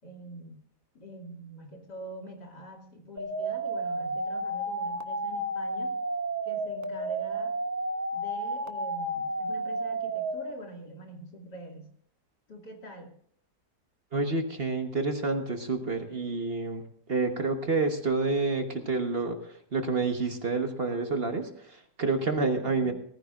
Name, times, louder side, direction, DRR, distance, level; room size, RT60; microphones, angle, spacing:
voice 1, 0.0-0.6 0.9-5.9 6.4-7.5 8.1-11.9 12.5-13.1, equal, 85° left, -1 dB, 3.2 m, -45 dB
sound 1, 3.2-10.5, right 2 dB, 20° right, 0.5 m, -32 dB
voice 2, 14.1-16.8 17.1-22.9, right 3 dB, 40° right, 5 dB, 1.3 m, -29 dB
18.5 x 14.5 x 2.5 m, 0.63 s
omnidirectional pair, 1.8 m